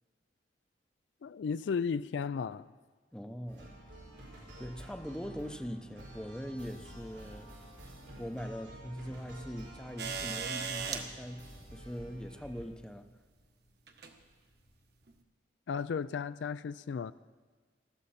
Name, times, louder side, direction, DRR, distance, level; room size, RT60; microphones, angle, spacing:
voice 1, 1.2-2.7 15.7-17.1, left 6 dB, 70° left, 0.3 m, -34 dB
voice 2, 3.1-3.7 4.6-7.6 8.2-13.1, equal, 5° left, 0.6 m, -42 dB
sound 1, 3.5-12.6, right 1 dB, 85° right, 4.9 m, -50 dB
sound 2, 10.0-11.0 12.4-12.5 13.9-14.1 15.1-15.2, right 6 dB, 60° right, 1.3 m, -36 dB
19.5 x 14.0 x 4.2 m
head